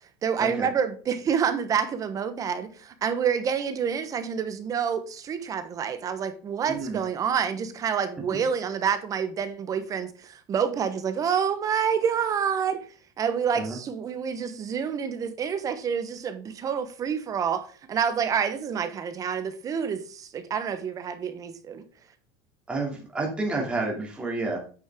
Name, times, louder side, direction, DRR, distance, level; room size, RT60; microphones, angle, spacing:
voice 1, 0.2-12.8 13.2-21.8, right 7 dB, 25° right, 1.1 m, -28 dB
voice 2, 6.7-7.0 13.5-13.8 22.7-24.6, right 3 dB, 10° right, 2.5 m, -30 dB
9.0 x 6.3 x 3.7 m
cardioid pair, 160°, 13 cm